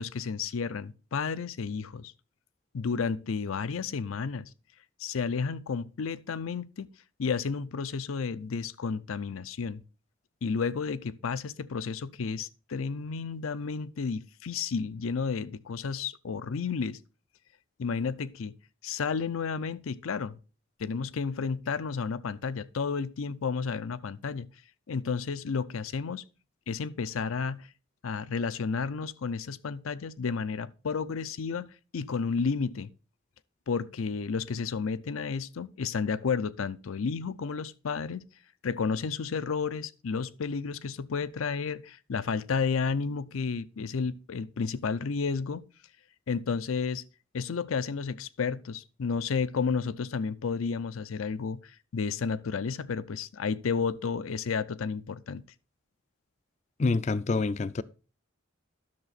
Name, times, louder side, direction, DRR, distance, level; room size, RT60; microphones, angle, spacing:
voice 1, 0.0-2.1 2.7-4.5 5.0-6.9 7.2-9.8 10.4-17.0 17.8-18.5 18.8-20.4 20.8-24.5 24.9-26.3 26.7-27.7 28.0-32.9 33.7-38.2 38.6-45.6 46.3-47.0 47.3-55.4, left 5 dB, 90° left, 0.5 m, -32 dB
voice 2, 56.8-57.8, left 3 dB, 35° left, 0.3 m, -27 dB
11.0 x 6.6 x 4.0 m
head